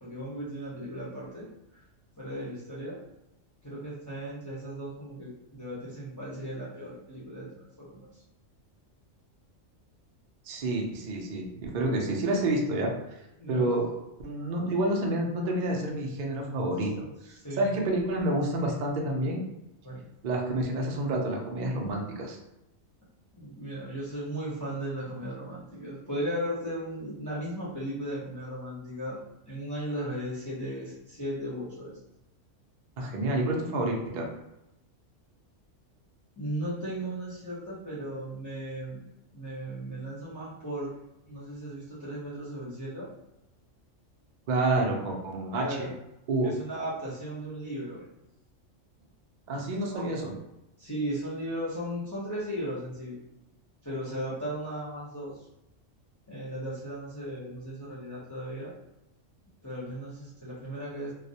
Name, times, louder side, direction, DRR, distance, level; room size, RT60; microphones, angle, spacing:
voice 1, 0.0-1.8 2.2-3.0 3.6-7.5 7.8-8.2 13.4-13.7 17.4-17.8 19.8-20.1 23.3-32.0 36.4-39.0 39.3-40.9 41.3-43.1 45.5-45.9 46.4-48.1 49.9-50.1 50.8-53.2 53.8-55.5 56.3-58.7 59.6-61.1, right 1 dB, 25° left, -9 dB, 0.4 m, -36 dB
voice 2, 10.4-13.2 13.5-13.9 14.2-19.4 20.2-22.4 33.0-34.3 44.5-45.9 46.3-46.5 49.5-50.3, right 1 dB, 75° right, 0 dB, 0.4 m, -29 dB
2.3 x 2.0 x 2.7 m, 0.89 s
omnidirectional pair, 1.4 m